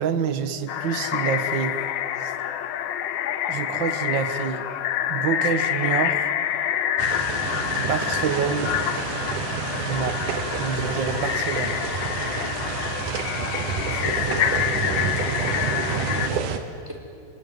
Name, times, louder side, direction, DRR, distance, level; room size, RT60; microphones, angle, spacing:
voice 1, 0.0-1.7 2.2-2.3 3.5-4.6 5.1-6.3 7.7-8.7 9.8-10.3 10.6-11.8, right 7 dB, 55° right, 9 dB, 1.4 m, -27 dB
sound 1, 0.7-16.3, left 11 dB, 85° left, 2.5 m, -27 dB
sound 2, 7.0-16.6, right 7 dB, 80° right, 2.9 m, -29 dB
voice 2, 13.8-15.4 15.8-16.6 16.9-17.0, equal, 5° right, 0 dB, 4.1 m, -37 dB
29.0 x 21.0 x 9.3 m, 2.5 s
omnidirectional pair, 3.7 m